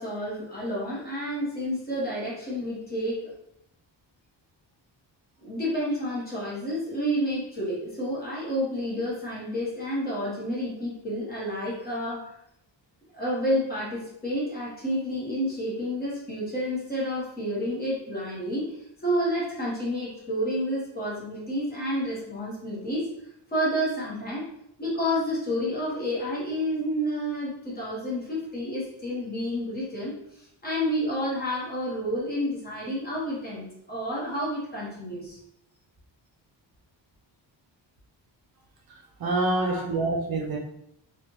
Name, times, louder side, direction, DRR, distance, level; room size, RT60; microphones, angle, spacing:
voice 1, 0.0-3.3 5.4-12.3 13.1-18.8 19.0-23.1 23.5-24.4 24.8-35.4 39.6-39.8, equal, 20° left, -7 dB, 1.1 m, -30 dB
voice 2, 39.2-40.6, right 2 dB, 55° right, -2 dB, 0.5 m, -26 dB
3.2 x 2.4 x 3.0 m, 0.76 s
wide cardioid pair, 170°, 44 cm